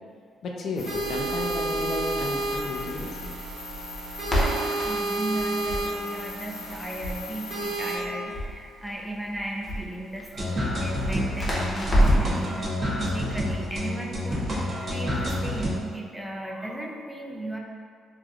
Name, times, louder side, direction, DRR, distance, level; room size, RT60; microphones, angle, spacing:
voice 1, 0.4-3.3, left 2 dB, 65° left, 0 dB, 0.4 m, -33 dB
sound 1, 0.8-8.0, right 2 dB, 70° right, 1.0 m, -31 dB
Crackle, 0.9-12.4, equal, 30° left, 0.8 m, -30 dB
voice 2, 4.3-17.6, right 1 dB, 5° right, -1 dB, 0.4 m, -36 dB
sound 2, 10.3-15.7, left 1 dB, 40° right, 0.7 m, -29 dB
3.2 x 2.5 x 2.3 m, 2.1 s
cardioid pair, 90°, 0 cm